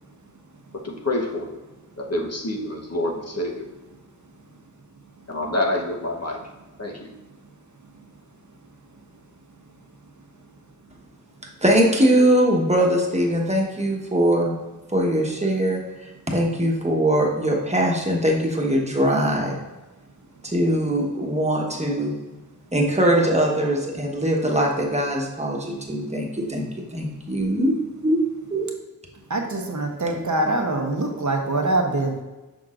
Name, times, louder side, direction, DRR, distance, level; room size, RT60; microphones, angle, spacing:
voice 1, 0.7-1.5 2.0-3.7 5.3-6.4 6.8-7.1, left 1 dB, 50° left, 0 dB, 1.0 m, -27 dB
voice 2, 11.6-14.6 14.9-19.6 20.4-22.1 22.7-27.8 28.0-28.2 28.5-28.7, right 1 dB, 20° right, -1 dB, 1.2 m, -21 dB
voice 3, 29.3-32.2, right 2 dB, 60° right, 2 dB, 0.9 m, -24 dB
6.3 x 6.2 x 2.5 m, 1.1 s
wide cardioid pair, 60°, 34 cm